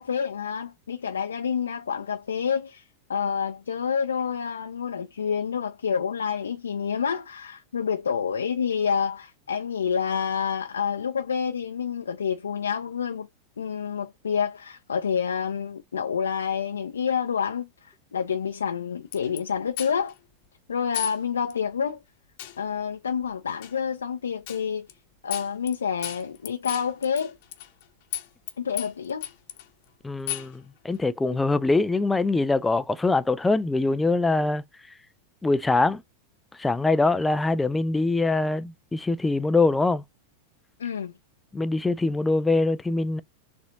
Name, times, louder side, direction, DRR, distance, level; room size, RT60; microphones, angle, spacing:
voice 1, 0.0-13.3 13.6-20.1 20.7-22.0 22.6-24.9 25.2-27.4 28.6-29.3 40.8-41.1, left 7 dB, 70° left, 0.5 m, -28 dB
sound 1, 19.1-19.4 19.8-20.2 20.9-21.2 21.5-21.6 22.4-22.6 23.6-23.7 24.5-24.6 24.9-25.0 25.3-25.7 26.0-27.8 28.1-28.5 28.8-29.7 30.3-30.5, left 14 dB, 50° left, 0.9 m, -34 dB
voice 2, 30.0-34.6 35.4-36.0 36.5-40.0 41.5-43.2, left 3 dB, 10° left, 0.3 m, -23 dB
6.7 x 2.5 x 2.7 m
figure-of-eight pair, 90°, 0 cm